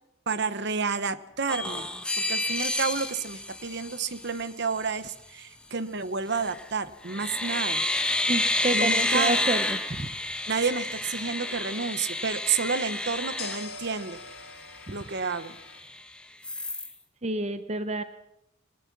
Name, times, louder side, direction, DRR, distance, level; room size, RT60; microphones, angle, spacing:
voice 1, 0.3-1.9 2.2-7.8 8.7-9.4 10.5-14.2 14.9-15.6, right 5 dB, 55° right, 14 dB, 1.0 m, -30 dB
sound 1, 1.5-4.5 6.3-6.7 7.0-14.3 14.7-14.8 15.1-16.0 16.4-16.9, left 1 dB, 5° left, 1.3 m, -30 dB
sound 2, 2.5-5.6 13.4-15.8, left 4 dB, 90° left, 3.5 m, -45 dB
voice 2, 8.3-10.1 17.2-18.0, right 2 dB, 30° right, 11 dB, 0.8 m, -29 dB
23.0 x 19.0 x 6.1 m, 0.82 s
head